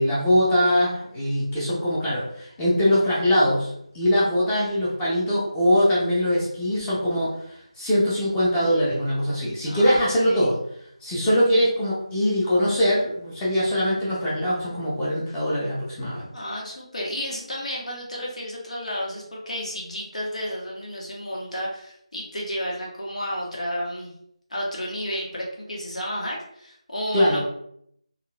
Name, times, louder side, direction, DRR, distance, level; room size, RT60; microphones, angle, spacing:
voice 1, 0.0-7.4 7.8-10.6 11.0-16.3 27.1-27.4, equal, 5° left, -8 dB, 0.5 m, -22 dB
voice 2, 9.6-10.5 16.3-24.1 24.5-27.4, equal, 85° left, -3 dB, 1.3 m, -32 dB
3.7 x 2.4 x 2.2 m, 0.71 s
figure-of-eight pair, 170°, 4 cm